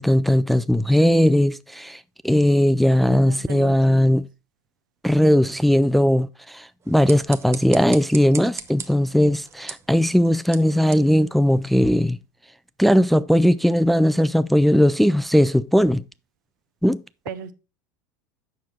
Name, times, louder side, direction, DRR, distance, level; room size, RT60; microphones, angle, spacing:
voice 1, 0.0-4.3 5.0-12.2 12.8-16.0 16.8-17.0, equal, ahead, 0.3 m, -18 dB
voice 2, 2.9-4.2 17.3-17.5, right 8 dB, 85° right, 1.1 m, -37 dB
sound 1, 6.8-12.1, right 6 dB, 25° right, 0.9 m, -40 dB
7.7 x 6.3 x 4.2 m
supercardioid pair, 125°, 10 cm